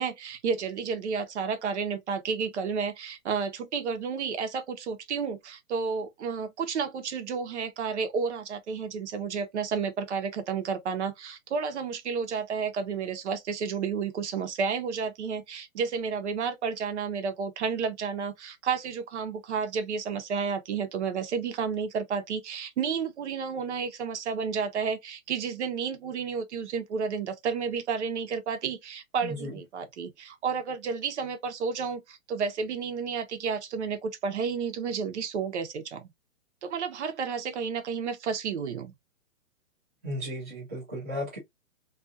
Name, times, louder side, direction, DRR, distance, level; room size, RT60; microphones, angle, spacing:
voice 1, 0.0-36.1 36.6-38.9, right 6 dB, 55° right, 0.8 m, -31 dB
voice 2, 29.2-29.5 40.0-41.4, equal, 10° right, 0.4 m, -35 dB
2.4 x 2.4 x 2.5 m
hypercardioid pair, 160°, 40 cm